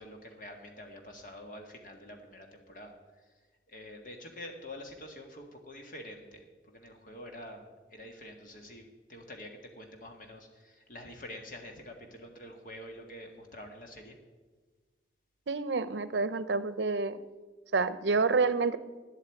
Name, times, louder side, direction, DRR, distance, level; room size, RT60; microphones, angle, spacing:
voice 1, 0.0-3.3 3.7-14.1, left 1 dB, 45° left, 3 dB, 1.7 m, -47 dB
voice 2, 15.5-17.2 17.7-18.8, right 4 dB, 80° right, 15 dB, 0.6 m, -28 dB
10.5 x 8.3 x 8.4 m, 1.3 s
head